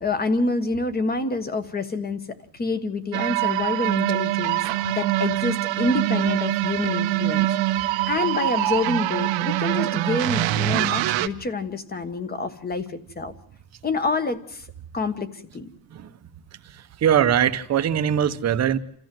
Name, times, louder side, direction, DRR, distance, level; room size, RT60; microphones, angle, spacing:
voice 1, 0.0-7.5 8.1-13.3 13.8-14.7 14.9-15.7, left 3 dB, 20° left, 1.4 m, -27 dB
sound 1, 3.1-11.3, right 15 dB, 80° right, 1.1 m, -24 dB
voice 2, 16.7-18.8, right 9 dB, 35° right, 1.0 m, -21 dB
28.5 x 14.5 x 7.7 m
cardioid pair, 170°, 45 cm